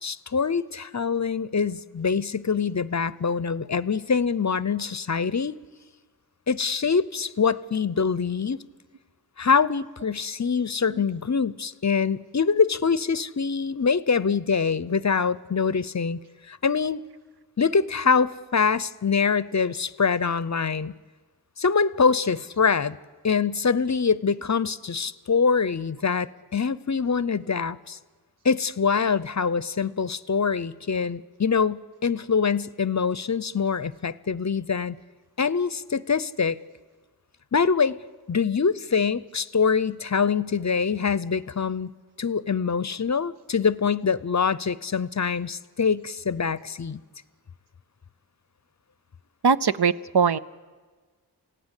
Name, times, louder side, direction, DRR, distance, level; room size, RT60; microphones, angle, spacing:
voice 1, 0.0-5.6 6.5-8.6 9.4-16.2 16.5-17.0 17.6-20.9 21.6-23.0 23.2-28.0 28.4-34.9 35.4-36.6 37.5-38.0 38.3-41.9 42.2-47.0, left 5 dB, 45° left, 18 dB, 0.6 m, -24 dB
voice 2, 49.4-50.4, right 6 dB, 70° right, 14 dB, 0.7 m, -21 dB
28.0 x 16.5 x 8.3 m, 1.4 s
wide cardioid pair, 70°, 41 cm